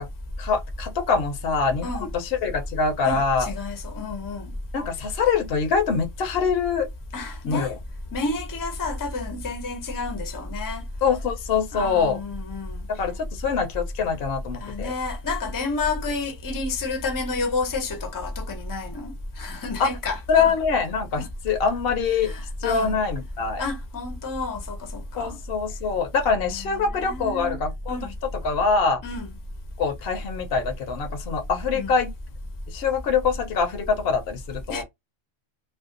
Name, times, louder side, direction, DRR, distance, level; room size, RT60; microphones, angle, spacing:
voice 1, 0.4-1.9 2.1-3.5 4.7-6.9 7.4-7.8 11.0-12.2 12.9-14.9 19.8-19.9 20.3-22.3 22.6-23.6 25.2-28.0 28.4-29.0 29.8-32.1 32.7-34.8, left 5 dB, 60° left, 0.8 m, -24 dB
voice 2, 3.0-4.5 7.1-7.7 8.1-10.8 11.7-12.8 14.6-20.5 21.2-21.3 22.2-23.0 23.6-25.4 26.5-27.6 27.9-28.1 29.0-29.3 31.7-31.9 34.7-34.8, left 3 dB, 25° left, 0.5 m, -30 dB
2.6 x 2.1 x 2.4 m
omnidirectional pair, 1.3 m